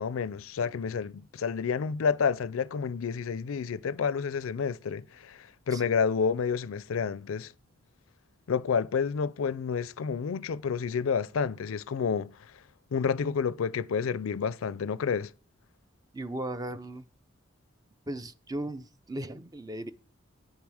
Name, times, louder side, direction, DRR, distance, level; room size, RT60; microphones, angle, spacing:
voice 1, 0.0-7.5 8.5-12.3 12.9-15.3, left 6 dB, 90° left, 0.4 m, -29 dB
voice 2, 16.1-17.1 18.1-19.9, right 1 dB, 20° right, 0.5 m, -37 dB
9.0 x 7.1 x 4.8 m
head